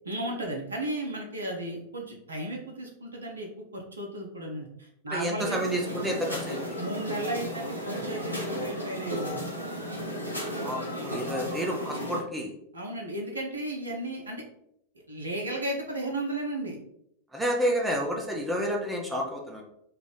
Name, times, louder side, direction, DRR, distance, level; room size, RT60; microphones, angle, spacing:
voice 1, 0.0-5.6 6.7-9.4 12.7-14.4 15.1-16.8, right 1 dB, 75° right, 0 dB, 0.7 m, -34 dB
voice 2, 5.1-6.8 10.5-12.5 17.3-19.6, equal, 10° right, -1 dB, 0.6 m, -30 dB
sound 1, 5.4-12.2, equal, 90° left, 0.6 m, -34 dB
3.3 x 2.4 x 3.7 m, 0.75 s
figure-of-eight pair, 90°, 0 cm